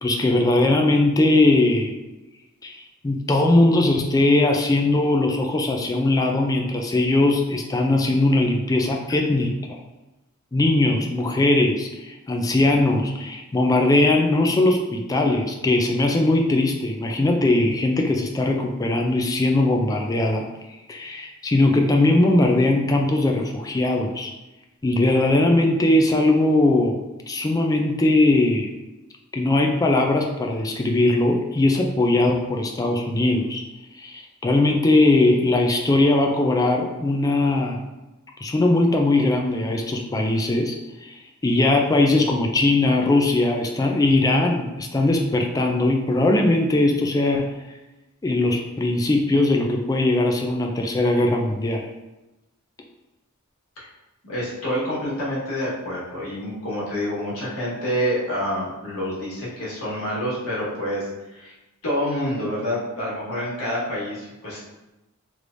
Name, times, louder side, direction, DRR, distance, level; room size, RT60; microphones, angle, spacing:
voice 1, 0.0-1.9 2.6-2.8 3.0-9.5 10.5-20.4 20.9-24.3 24.8-27.0 27.3-28.7 29.3-33.6 34.0-37.8 38.4-40.8 41.0-41.1 41.4-47.5 48.2-51.8, left 2 dB, 15° left, 2 dB, 0.3 m, -20 dB
voice 2, 54.2-61.5 61.8-64.6, equal, 85° left, -7 dB, 1.4 m, -27 dB
3.3 x 3.1 x 2.5 m, 1.0 s
head